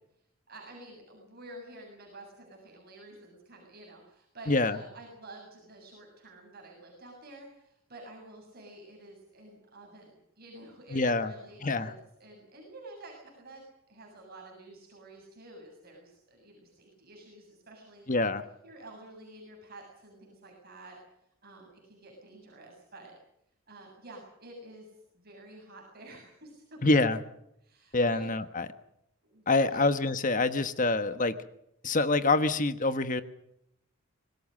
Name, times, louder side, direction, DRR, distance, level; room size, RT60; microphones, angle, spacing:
voice 1, 0.5-18.2 18.6-21.0 21.4-23.1 23.7-27.0 27.6-28.3 29.3-29.4 29.7-29.8, right 2 dB, 45° right, -1 dB, 7.4 m, -50 dB
voice 2, 4.5-4.8 10.9-11.3 11.6-11.9 18.1-18.4 26.8-27.2 27.9-28.7 29.5-31.3 31.8-33.2, left 3 dB, 35° left, 11 dB, 1.2 m, -26 dB
26.0 x 20.0 x 6.6 m, 0.77 s
head